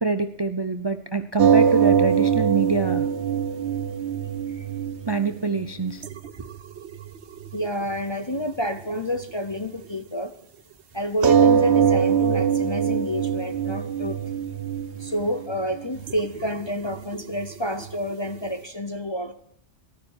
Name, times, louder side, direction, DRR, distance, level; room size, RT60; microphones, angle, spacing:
voice 1, 0.0-3.1 5.1-6.1 6.4-6.5, right 4 dB, 30° right, 10 dB, 0.5 m, -25 dB
sound 1, 1.4-7.6 8.7-8.8 11.2-18.4, right 7 dB, 65° right, 1.1 m, -22 dB
voice 2, 7.5-10.3 10.9-14.2 15.0-19.3, equal, 30° left, 8 dB, 0.6 m, -29 dB
14.5 x 12.5 x 4.7 m, 0.72 s
omnidirectional pair, 1.2 m